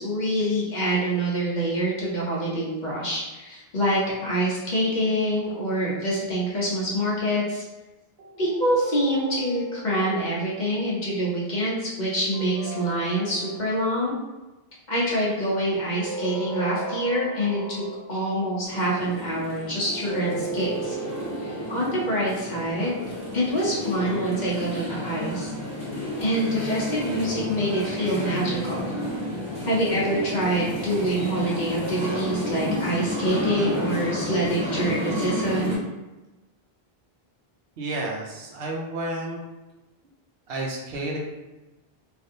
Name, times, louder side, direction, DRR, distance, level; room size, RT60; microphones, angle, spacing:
voice 1, 0.0-7.6 8.4-14.1 14.9-21.0 21.7-23.0 23.3-25.5 26.2-28.9 29.7-35.8, right 1 dB, 50° left, -5 dB, 0.9 m, -26 dB
sound 1, 8.2-10.7 12.3-14.2 15.6-18.3 19.6-24.1, right 2 dB, 45° right, 0.8 m, -36 dB
sound 2, 18.6-35.8, left 1 dB, 5° right, 1.0 m, -31 dB
voice 2, 37.8-39.4 40.5-41.2, right 2 dB, 75° right, -1 dB, 0.9 m, -31 dB
3.4 x 2.5 x 2.6 m, 1.1 s
omnidirectional pair, 1.0 m